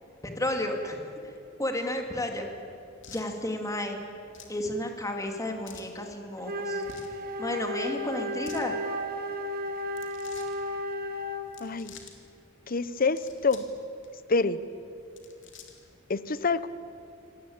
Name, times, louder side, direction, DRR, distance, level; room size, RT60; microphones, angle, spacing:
voice 1, 0.2-1.0 1.2-1.3 1.6-2.5 3.1-4.0 4.5-6.8 7.4-8.8, left 1 dB, 15° left, 3 dB, 2.6 m, -32 dB
sound 1, 3.0-3.3 4.3-4.6 5.6-5.9 6.8-7.2 8.3-8.7 9.9-10.6 11.4-12.1 13.0-13.7 14.0-14.1 15.0-15.9, left 6 dB, 65° left, 2.9 m, -49 dB
Wind instrument woodwind instrument, 6.4-11.6, left 1 dB, 50° right, 1.8 m, -33 dB
voice 2, 11.6-11.9 12.7-13.6 14.3-14.6 16.1-16.7, left 4 dB, 45° left, 15 dB, 0.8 m, -26 dB
26.0 x 19.0 x 8.8 m, 2.6 s
head